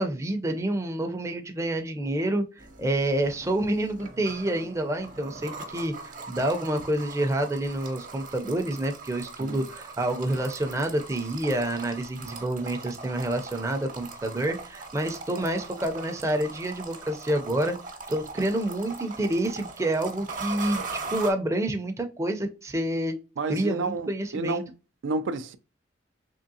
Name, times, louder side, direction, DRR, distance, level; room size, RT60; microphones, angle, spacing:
voice 1, 0.0-17.8 18.1-23.2 23.5-24.6, right 1 dB, 15° right, 0.5 m, -28 dB
sound 1, 2.6-21.3, right 4 dB, 45° right, 0.8 m, -40 dB
voice 2, 23.4-24.7 25.0-25.6, right 3 dB, 75° right, 0.4 m, -30 dB
3.6 x 3.1 x 2.7 m
head